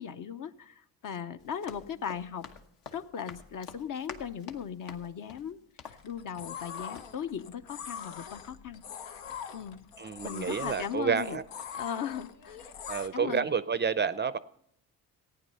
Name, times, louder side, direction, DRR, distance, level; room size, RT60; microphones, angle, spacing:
voice 1, 0.0-2.5 2.9-5.6 5.9-8.8 9.5-9.8 10.2-11.4 11.7-12.6 13.1-13.5, left 8 dB, 50° left, 10 dB, 0.8 m, -38 dB
Run, 1.4-6.7 6.9-7.1, left 6 dB, 70° left, 1.3 m, -48 dB
sound 1, 5.9-13.1, left 7 dB, 85° left, 1.0 m, -42 dB
voice 2, 10.0-11.4 12.9-14.4, right 6 dB, 25° right, 15 dB, 0.5 m, -29 dB
14.5 x 9.3 x 5.5 m, 0.71 s
supercardioid pair, 70°, 42 cm